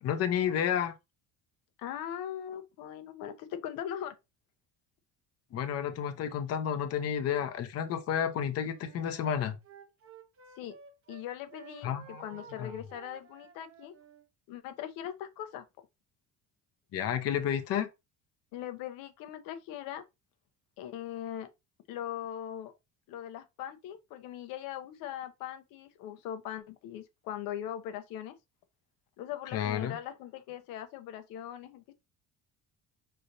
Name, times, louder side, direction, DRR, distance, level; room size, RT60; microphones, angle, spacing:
voice 1, 0.0-0.9 5.5-9.6 11.8-12.2 12.6-12.7 16.9-17.9 29.5-30.0, left 9 dB, 50° left, 0.8 m, -31 dB
voice 2, 1.8-4.2 10.6-10.7 11.1-13.9 14.5-15.7 18.5-20.0 20.8-21.5 21.9-22.8 23.1-28.4 29.2-31.9, left 10 dB, 85° left, 0.8 m, -40 dB
Wind instrument woodwind instrument, 8.6-11.2 11.5-14.3, right 8 dB, 40° right, 0.9 m, -53 dB
5.2 x 3.3 x 2.6 m
cardioid pair, 140°, 33 cm